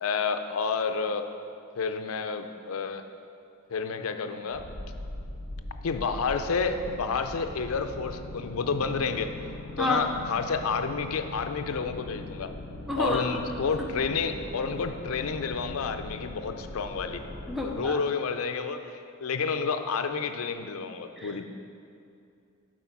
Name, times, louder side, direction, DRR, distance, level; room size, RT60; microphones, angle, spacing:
voice 1, 0.0-1.3 1.8-3.1 3.7-4.7 5.8-9.3 9.8-12.5 13.0-17.2 17.6-21.5, left 5 dB, 80° left, 8 dB, 0.5 m, -30 dB
sound 1, 4.5-17.8, left 2 dB, 55° left, 0.8 m, -41 dB
voice 2, 9.8-10.1 12.9-13.4 13.8-13.9 17.5-18.0 21.2-21.5, left 2 dB, ahead, 0 dB, 0.5 m, -30 dB
7.6 x 5.0 x 5.9 m, 2.5 s
head